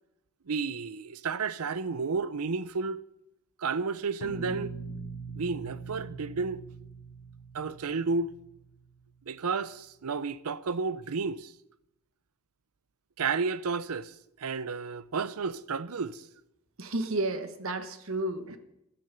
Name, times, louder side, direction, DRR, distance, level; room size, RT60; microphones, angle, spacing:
voice 1, 0.5-3.0 3.6-4.8 5.4-6.6 7.5-8.3 9.3-11.5 13.2-16.3, right 4 dB, 90° right, 0.6 m, -32 dB
sound 1, 4.2-9.1, right 3 dB, 80° left, 1.6 m, -42 dB
voice 2, 16.8-18.6, right 2 dB, 70° right, 1.3 m, -32 dB
12.5 x 9.5 x 6.8 m
head